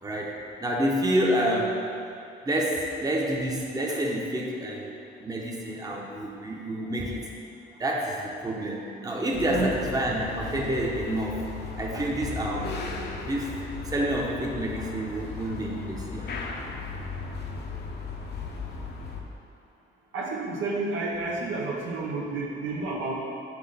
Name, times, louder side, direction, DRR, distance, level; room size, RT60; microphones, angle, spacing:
voice 1, 0.0-1.8 2.4-4.9 5.2-7.2 7.8-11.5 11.8-12.8 13.2-13.5 13.8-16.3, right 1 dB, 20° right, -2 dB, 0.9 m, -28 dB
sound 1, 9.3-19.2, left 4 dB, 55° left, 0.9 m, -36 dB
voice 2, 20.1-23.1, right 3 dB, 80° right, -3 dB, 1.1 m, -30 dB
6.1 x 3.8 x 5.5 m, 2.6 s
cardioid pair, 90°, 20 cm